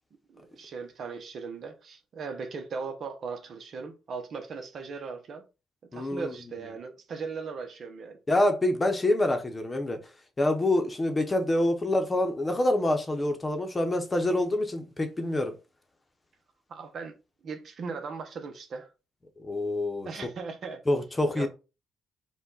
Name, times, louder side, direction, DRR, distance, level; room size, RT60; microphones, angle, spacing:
voice 1, 0.3-5.4 5.9-8.2 16.7-17.1 17.4-18.9 20.0-20.8 21.3-21.5, right 5 dB, 55° right, 1.0 m, -38 dB
voice 2, 5.9-6.3 8.3-10.0 10.4-15.5 19.4-20.1 20.9-21.5, left 1 dB, 20° left, 1.0 m, -26 dB
5.0 x 2.5 x 4.0 m
cardioid pair, 105°, 0 cm